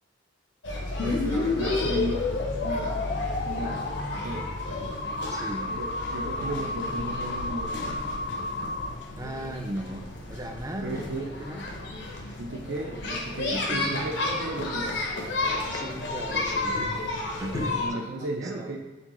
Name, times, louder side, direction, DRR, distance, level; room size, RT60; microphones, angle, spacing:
sound 1, 0.6-17.9, left 2 dB, 80° left, 0.7 m, -33 dB
sound 2, 1.0-8.9, left 3 dB, 50° left, 0.4 m, -31 dB
voice 1, 1.0-2.3 2.6-3.0 3.5-4.5 5.6-8.0 10.8-11.3 12.4-15.1 17.8-18.8, right 1 dB, 75° right, -2 dB, 0.5 m, -35 dB
voice 2, 5.3-5.7 9.2-10.0 10.3-11.6 13.5-14.0 15.7-16.9 17.4-18.7, right 1 dB, 20° right, 4 dB, 0.4 m, -37 dB
4.3 x 3.7 x 3.0 m, 1.2 s
head